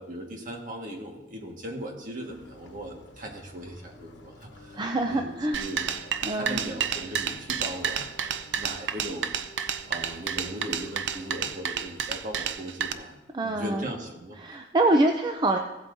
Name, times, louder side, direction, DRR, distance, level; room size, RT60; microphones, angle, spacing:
voice 1, 0.0-5.9 6.3-8.1 8.5-9.3 9.9-14.6, right 1 dB, 50° right, 1 dB, 1.6 m, -38 dB
sound 1, 2.2-11.6, left 1 dB, 90° left, 1.0 m, -50 dB
voice 2, 4.7-5.6 6.2-6.6 13.3-13.9 14.4-15.6, right 2 dB, 25° right, 5 dB, 0.5 m, -25 dB
sound 2, 5.5-12.9, right 8 dB, 75° right, 0.6 m, -30 dB
16.0 x 8.2 x 2.6 m, 0.99 s
head